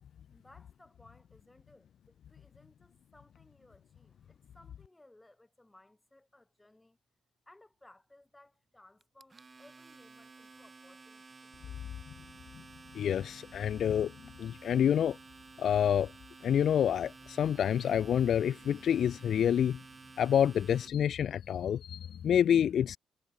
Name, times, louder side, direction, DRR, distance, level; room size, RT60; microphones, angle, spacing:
voice 1, 0.3-7.0 7.5-11.8, left 2 dB, 10° left, 3.6 m, -61 dB
Domestic sounds home sounds, 9.0-20.9, right 4 dB, 25° right, 6.1 m, -53 dB
voice 2, 12.9-14.1 14.4-15.2 15.6-16.1 16.4-19.8 20.2-23.0, left 9 dB, 65° left, 0.3 m, -28 dB
cardioid pair, 90°, 0 cm